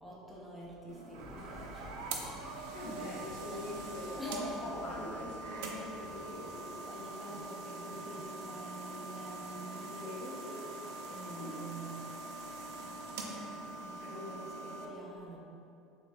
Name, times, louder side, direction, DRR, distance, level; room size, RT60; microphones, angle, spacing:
voice 1, 0.0-3.2 3.5-3.7 4.0-5.1 6.9-11.9 12.3-15.4, right 1 dB, ahead, -7 dB, 0.7 m, -48 dB
sound 1, 0.9-14.9, right 2 dB, 80° right, 0.5 m, -44 dB
sound 2, 1.2-6.7, left 2 dB, 40° left, 0.6 m, -47 dB
voice 2, 2.7-4.1 4.9-6.7 9.9-10.2 11.3-11.7 14.0-14.4, left 2 dB, 75° left, -4 dB, 1.0 m, -45 dB
6.8 x 2.9 x 2.2 m, 2.7 s
cardioid pair, 160°, 0 cm